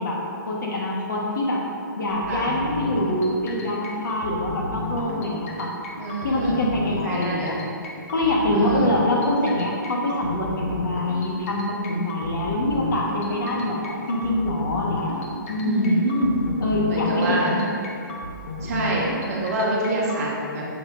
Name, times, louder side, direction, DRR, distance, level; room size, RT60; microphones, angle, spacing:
voice 1, 0.0-1.6 2.0-5.7 6.2-7.6 8.1-15.1 15.5-16.0 16.6-17.6, left 1 dB, 60° left, -2 dB, 1.4 m, -25 dB
sound 1, 2.1-20.2, left 2 dB, 40° left, 0.8 m, -34 dB
voice 2, 6.0-6.6 7.0-7.6 8.5-8.9 15.6-16.4 16.8-17.6 18.6-20.6, right 2 dB, 45° right, -4 dB, 1.4 m, -25 dB
7.1 x 6.8 x 2.6 m, 2.5 s
hypercardioid pair, 165°, 11 cm